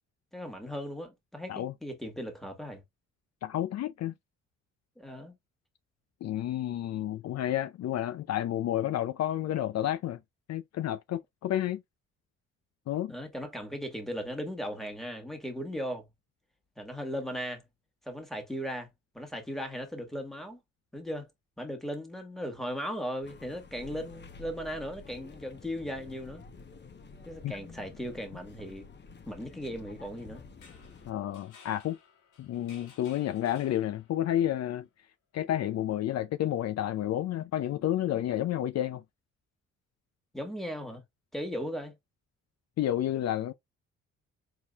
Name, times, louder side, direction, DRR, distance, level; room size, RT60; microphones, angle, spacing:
voice 1, 0.3-2.8 5.0-5.3 13.1-16.1 16.8-17.6 18.0-18.9 19.1-20.6 20.9-21.3 21.6-26.4 27.2-28.9 29.2-30.4 40.3-41.0 41.3-42.0, equal, ahead, 1.7 m, -37 dB
voice 2, 3.4-4.1 6.2-10.2 10.5-11.8 12.9-13.1 27.4-27.6 31.1-32.0 32.4-34.9 35.3-39.0 42.8-43.5, left 12 dB, 60° left, 0.5 m, -30 dB
sound 1, 23.2-31.1, left 4 dB, 35° left, 1.0 m, -50 dB
sound 2, 30.5-34.3, left 5 dB, 90° left, 2.0 m, -57 dB
4.6 x 3.7 x 2.4 m
cardioid pair, 90°, 30 cm